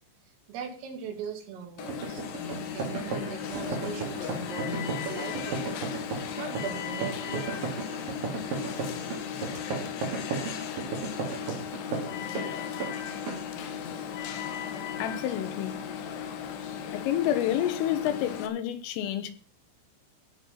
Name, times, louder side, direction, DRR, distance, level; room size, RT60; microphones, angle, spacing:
voice 1, 0.5-5.7 6.4-7.4, right 6 dB, 90° right, 4.9 m, -40 dB
Alarm, 1.8-18.5, left 8 dB, 65° left, 2.5 m, -36 dB
sound 1, 1.8-12.5 12.8-13.0 13.3-13.5, right 5 dB, 50° right, 3.5 m, -34 dB
voice 2, 15.0-15.8 16.9-19.3, left 11 dB, 85° left, 3.9 m, -29 dB
17.0 x 6.4 x 5.9 m
omnidirectional pair, 5.7 m